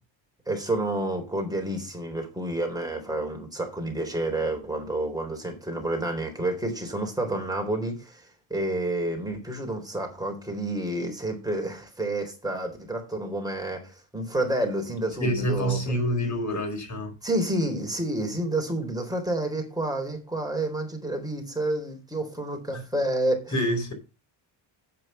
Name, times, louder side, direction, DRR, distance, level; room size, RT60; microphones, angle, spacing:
voice 1, 0.5-8.2 8.5-16.0 17.2-23.6, right 1 dB, 10° right, 3.8 m, -29 dB
voice 2, 15.2-17.1 22.7-22.8 23.5-23.9, equal, 35° left, 4.8 m, -27 dB
8.8 x 7.7 x 5.6 m
cardioid pair, 100°, 49 cm